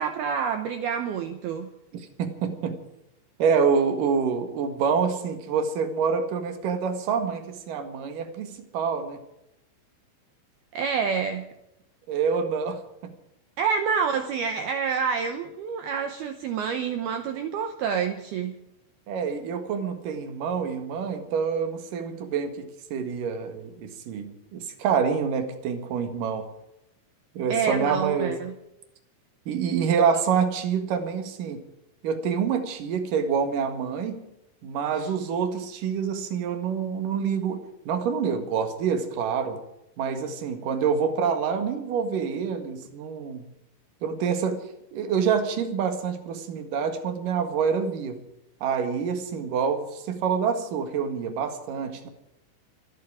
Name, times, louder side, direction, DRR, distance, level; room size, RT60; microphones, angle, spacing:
voice 1, 0.0-1.7 10.7-11.5 13.6-18.5 27.5-28.5 35.0-35.1, right 6 dB, 85° right, 8 dB, 2.2 m, -28 dB
voice 2, 2.2-2.8 3.4-9.2 12.1-13.1 19.1-26.5 27.3-28.5 29.5-31.7 32.0-34.2 34.6-39.6 40.0-43.5 44.0-48.2 48.6-52.1, right 6 dB, 55° right, 7 dB, 2.7 m, -27 dB
26.0 x 11.0 x 4.9 m, 0.85 s
omnidirectional pair, 5.9 m